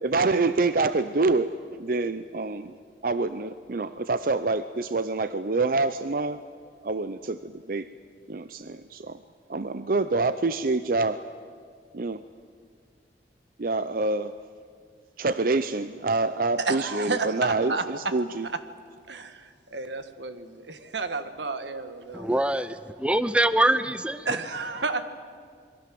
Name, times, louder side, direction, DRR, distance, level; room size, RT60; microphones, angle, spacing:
voice 1, 0.0-2.7 3.0-6.4 6.8-7.9 8.3-9.2 9.5-11.2 11.9-12.2 13.6-14.3 15.2-18.5, right 3 dB, 55° right, 12 dB, 0.6 m, -26 dB
voice 2, 16.6-17.8 18.2-18.6 19.1-22.3 24.2-25.1, right 3 dB, 90° right, 9 dB, 1.7 m, -31 dB
voice 3, 22.1-24.4, right 1 dB, 5° right, 13 dB, 0.6 m, -24 dB
27.5 x 22.0 x 7.8 m, 2.1 s
head